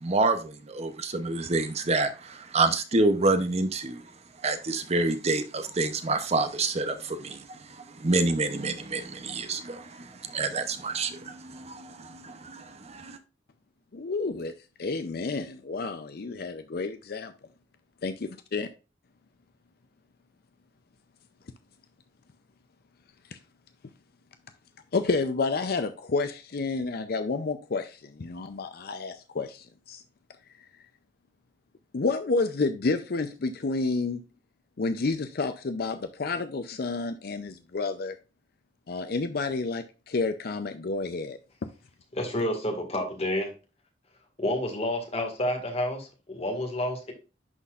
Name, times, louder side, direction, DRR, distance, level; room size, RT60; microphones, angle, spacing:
voice 1, 0.0-4.0 4.4-7.6 8.0-13.2, right 3 dB, 35° right, 0.7 m, -28 dB
voice 2, 13.9-14.5 14.8-17.3 18.0-18.1 18.5-18.7 23.3-23.4 24.9-30.0 31.9-34.2 34.8-38.2 38.9-41.4, left 3 dB, 55° left, 0.5 m, -30 dB
voice 3, 42.1-43.5 44.4-47.1, left 1 dB, 35° left, 1.8 m, -29 dB
11.0 x 4.2 x 2.4 m
head